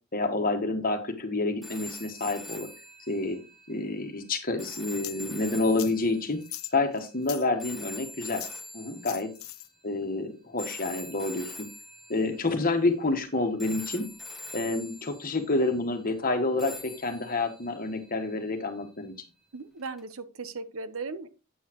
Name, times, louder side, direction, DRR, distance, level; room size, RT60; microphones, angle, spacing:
voice 1, 0.1-2.7 3.1-3.4 3.7-6.4 6.7-8.4 8.7-9.3 9.8-11.5 12.1-14.1 14.5-19.1, left 2 dB, 40° left, 6 dB, 1.4 m, -28 dB
sound 1, 1.6-9.8 10.6-13.3 13.6-15.7 16.6-18.8 20.0-20.1, left 2 dB, ahead, 1.3 m, -44 dB
sound 2, 5.0-5.2 5.8-5.9 6.4-7.5 8.3-8.6 9.0-9.7, left 16 dB, 85° left, 0.6 m, -39 dB
voice 2, 19.5-21.3, right 4 dB, 75° right, 13 dB, 0.8 m, -38 dB
8.5 x 8.2 x 3.0 m, 0.31 s
head